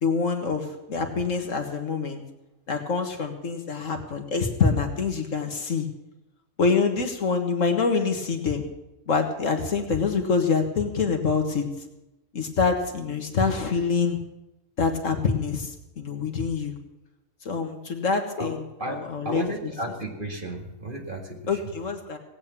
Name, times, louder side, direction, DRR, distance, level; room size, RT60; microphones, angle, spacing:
voice 1, 0.0-2.2 2.7-5.9 6.6-8.6 9.1-11.7 12.3-14.2 14.8-16.7 17.5-19.7 21.5-22.2, left 5 dB, 70° left, 4 dB, 1.9 m, -26 dB
voice 2, 19.2-21.6, right 1 dB, 40° right, 1 dB, 2.2 m, -33 dB
17.5 x 8.7 x 7.2 m, 0.93 s
omnidirectional pair, 1.4 m